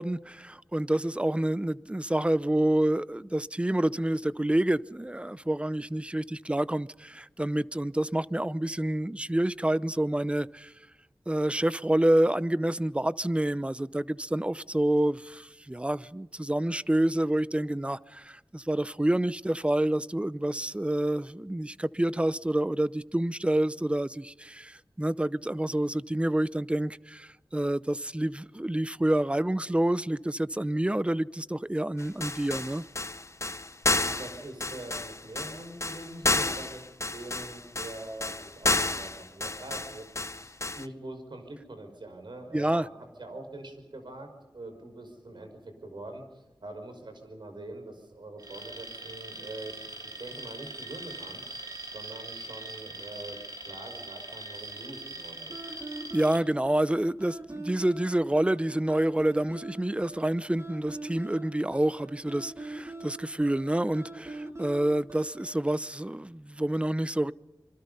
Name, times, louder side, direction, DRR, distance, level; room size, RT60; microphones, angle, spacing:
voice 1, 0.0-10.7 11.3-32.8 42.5-42.9 56.1-67.3, right 1 dB, 15° right, 0.7 m, -28 dB
sound 1, 32.0-40.9, left 2 dB, 40° left, 0.9 m, -31 dB
voice 2, 33.9-42.9 43.2-44.3 44.5-49.7 50.0-55.6, right 2 dB, 75° right, 5.6 m, -44 dB
Alarm, 48.4-56.4, right 2 dB, 50° right, 3.9 m, -42 dB
sound 2, 55.5-65.6, right 2 dB, 35° right, 3.3 m, -43 dB
27.0 x 24.0 x 5.6 m
wide cardioid pair, 55°, 8 cm